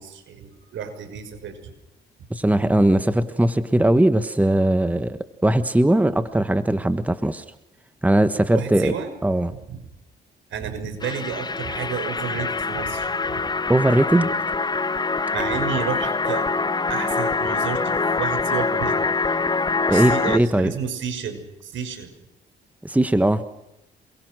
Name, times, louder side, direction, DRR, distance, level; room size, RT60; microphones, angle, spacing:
voice 1, 0.0-1.7 8.5-9.1 9.7-9.8 10.5-13.4 15.3-16.5 16.9-19.0 19.9-22.1, right 7 dB, 75° right, 8 dB, 6.0 m, -31 dB
voice 2, 2.3-7.4 8.0-8.9 9.2-9.5 13.7-14.3 19.9-20.7 22.8-23.4, right 1 dB, 5° right, 11 dB, 1.4 m, -19 dB
sound 1, 11.0-20.4, left 4 dB, 20° left, 1.1 m, -24 dB
27.5 x 23.0 x 6.3 m, 0.86 s
cardioid pair, 90°, 20 cm